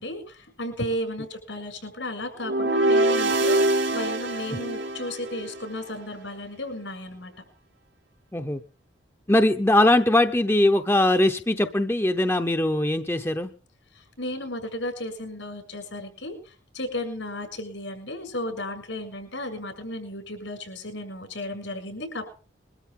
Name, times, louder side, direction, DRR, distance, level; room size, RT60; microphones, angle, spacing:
voice 1, 0.0-7.3 13.9-22.3, left 1 dB, 85° left, 5 dB, 6.9 m, -34 dB
sound 1, 2.4-5.7, right 1 dB, 90° right, 2.1 m, -24 dB
voice 2, 9.3-13.5, left 1 dB, 15° left, 7 dB, 0.7 m, -21 dB
22.5 x 13.0 x 3.7 m, 0.39 s
head